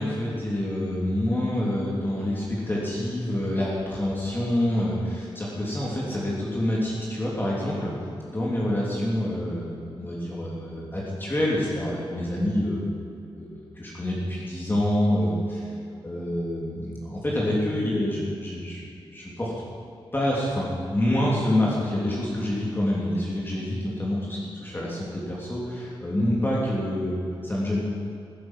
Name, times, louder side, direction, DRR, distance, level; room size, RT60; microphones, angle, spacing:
voice 1, 0.0-7.9 8.2-12.9 13.3-15.7 16.0-18.8 19.1-19.5 20.1-27.8, left 1 dB, 20° left, -5 dB, 3.2 m, -27 dB
15.5 x 7.9 x 7.7 m, 2.4 s
cardioid pair, 75°, 10 cm